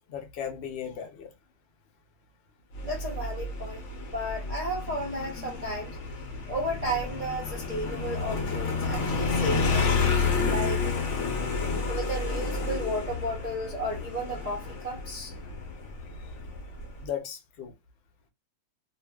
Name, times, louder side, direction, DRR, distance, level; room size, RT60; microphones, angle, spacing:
voice 1, 0.1-1.3 16.2-16.3 17.0-17.8, left 8 dB, 90° left, 0.5 m, -37 dB
Motorcycle, 2.7-17.1, left 4 dB, 60° left, 0.8 m, -30 dB
voice 2, 2.8-6.0 6.5-10.1 10.5-10.9 11.9-15.3, right 1 dB, 70° right, 0.3 m, -33 dB
2.7 x 2.5 x 2.2 m
omnidirectional pair, 1.9 m